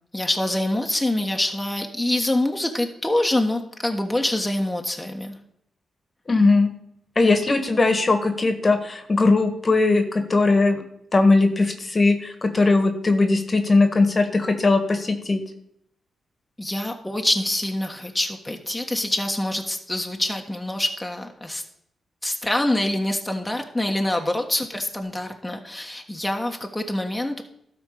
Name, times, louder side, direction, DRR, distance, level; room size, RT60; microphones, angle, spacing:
voice 1, 0.1-5.4 16.6-21.6 22.2-27.4, left 1 dB, 10° left, 2 dB, 1.4 m, -25 dB
voice 2, 6.3-6.7 7.2-10.8 11.1-15.4, left 3 dB, 35° left, 7 dB, 1.6 m, -19 dB
12.5 x 4.5 x 6.7 m, 0.75 s
supercardioid pair, 55°, 0 cm